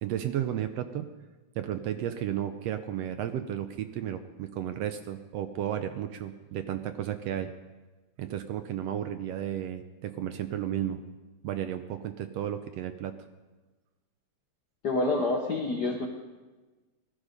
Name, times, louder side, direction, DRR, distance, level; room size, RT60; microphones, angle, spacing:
voice 1, 0.0-1.1 1.5-7.5 8.2-11.0 11.4-13.1, right 10 dB, 75° right, 9 dB, 1.6 m, -33 dB
voice 2, 14.8-16.1, left 2 dB, 60° left, 1 dB, 1.1 m, -27 dB
19.0 x 12.5 x 5.2 m, 1.2 s
omnidirectional pair, 3.3 m